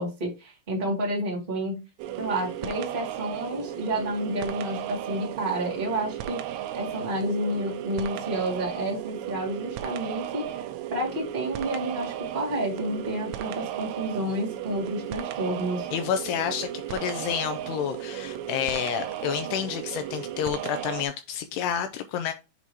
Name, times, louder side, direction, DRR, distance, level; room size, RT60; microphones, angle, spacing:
voice 1, 0.0-1.8 2.2-15.9, right 1 dB, 60° right, 0.5 m, -30 dB
sound 1, 2.0-21.1, right 11 dB, 85° right, 2.6 m, -35 dB
voice 2, 15.9-22.3, left 8 dB, 85° left, 2.4 m, -29 dB
8.1 x 2.8 x 4.6 m
omnidirectional pair, 5.2 m